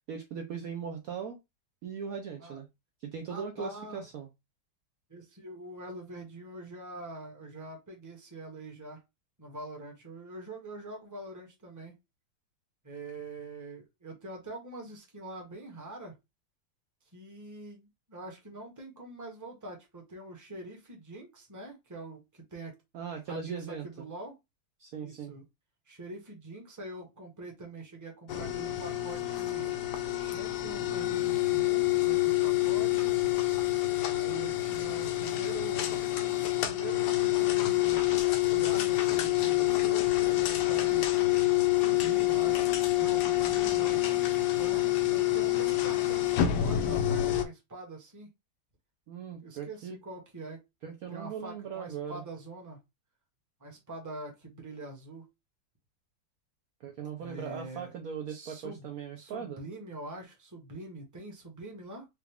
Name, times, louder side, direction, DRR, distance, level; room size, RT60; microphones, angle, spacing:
voice 1, 0.1-1.4 1.8-2.7 3.0-4.3 22.9-24.1 24.8-25.3 49.1-50.0 50.8-52.2 56.8-59.6, right 7 dB, 65° right, 0.9 m, -39 dB
voice 2, 3.3-4.0 5.1-9.0 9.4-12.0 12.8-16.2 17.1-22.8 23.3-24.4 24.9-25.4 25.9-29.8 30.1-33.2 34.0-36.1 36.6-38.1 38.4-42.7 43.0-44.0 44.5-48.3 49.4-50.6 51.1-52.8 53.6-55.3 57.2-57.9 58.3-58.9 59.2-62.1, right 2 dB, 10° right, 1.0 m, -44 dB
sound 1, 28.3-47.4, left 15 dB, 75° left, 1.2 m, -27 dB
4.7 x 2.4 x 3.4 m
omnidirectional pair, 2.0 m